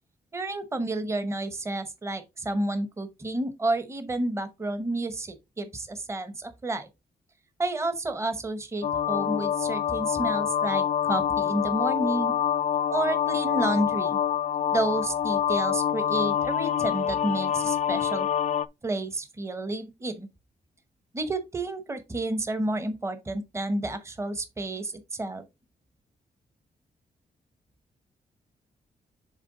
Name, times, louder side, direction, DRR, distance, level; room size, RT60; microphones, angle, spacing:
voice 1, 0.3-6.9 7.6-12.3 12.9-14.2 14.7-18.3 18.8-20.3 21.1-25.4, right 2 dB, 15° right, 0.8 m, -30 dB
sound 1, 8.8-18.7, left 9 dB, 50° left, 0.4 m, -26 dB
7.4 x 3.4 x 3.8 m
wide cardioid pair, 135°, 16 cm